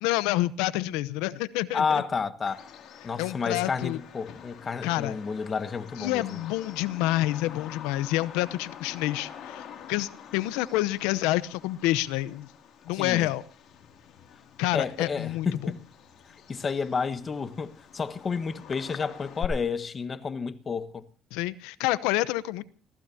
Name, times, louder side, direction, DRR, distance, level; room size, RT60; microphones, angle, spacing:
voice 1, 0.0-2.0 3.2-4.0 4.8-5.1 6.0-12.5 12.9-13.4 14.6-15.5 21.3-22.6, left 16 dB, 85° left, 0.8 m, -28 dB
voice 2, 1.7-2.6 3.0-6.4 13.0-13.3 14.7-15.8 16.2-21.0, left 5 dB, 35° left, 1.3 m, -31 dB
Bird vocalization bird call bird song, 2.5-19.5, left 9 dB, 65° left, 2.6 m, -45 dB
30.0 x 15.5 x 2.8 m
supercardioid pair, 70°, 0 cm